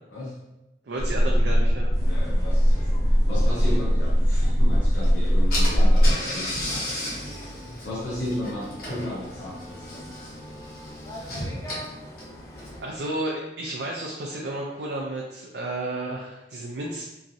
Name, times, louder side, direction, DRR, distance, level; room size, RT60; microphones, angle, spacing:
voice 1, 0.1-0.4 2.0-7.0 7.8-10.3, left 1 dB, 70° left, -5 dB, 0.5 m, -35 dB
voice 2, 0.9-1.9 3.7-3.8 12.8-17.0, right 1 dB, 65° right, -2 dB, 0.4 m, -32 dB
(GF) Metal wire fence resonating in the wind, 1.0-6.1, equal, 45° right, 1.2 m, -20 dB
sound 1, 1.9-12.8, left 1 dB, 20° left, 0.3 m, -44 dB
Car / Engine, 5.0-5.1 5.5-12.9, left 1 dB, 55° left, 0.9 m, -35 dB
3.0 x 2.5 x 2.5 m, 0.96 s
head